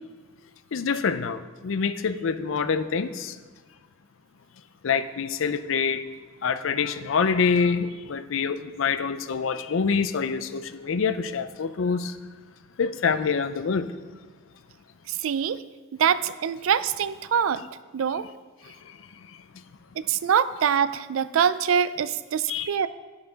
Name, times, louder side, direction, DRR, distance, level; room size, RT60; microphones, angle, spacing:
voice 1, 0.7-3.3 4.8-6.0 6.4-12.2 12.8-13.9 22.5-22.9, left 5 dB, 75° left, 0.5 m, -26 dB
voice 2, 15.1-15.6 15.9-17.6 17.9-18.2 20.0-22.9, right 8 dB, 90° right, 0.4 m, -24 dB
12.5 x 5.7 x 4.0 m
head